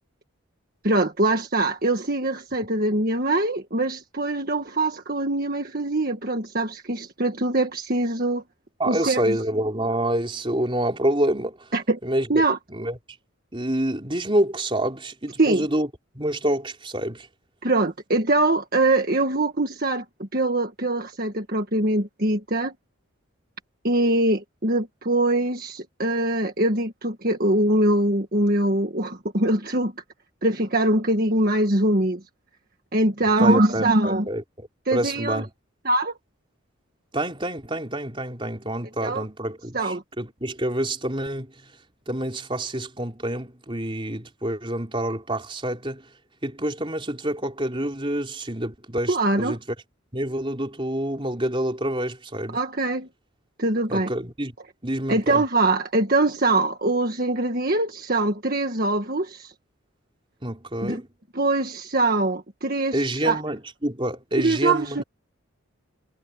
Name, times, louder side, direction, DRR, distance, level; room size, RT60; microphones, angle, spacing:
voice 1, 0.8-8.4 8.9-9.4 11.7-12.0 12.3-12.6 15.4-15.6 17.6-22.7 23.8-29.9 30.4-32.2 32.9-34.3 34.9-35.4 35.8-36.1 39.0-39.2 39.7-40.0 49.1-49.6 52.5-53.1 53.6-54.1 55.1-59.5 60.8-61.0 61.3-63.4 64.4-65.0, right 2 dB, 45° right, 1.7 m, -23 dB
voice 2, 8.8-11.7 12.0-12.3 12.7-13.0 13.5-15.9 16.1-17.3 33.4-34.4 34.9-35.5 37.1-41.5 42.1-46.0 46.4-49.6 50.1-52.6 53.9-54.5 54.8-55.4 60.4-61.1 62.9-65.0, right 1 dB, 25° right, 4.3 m, -27 dB
head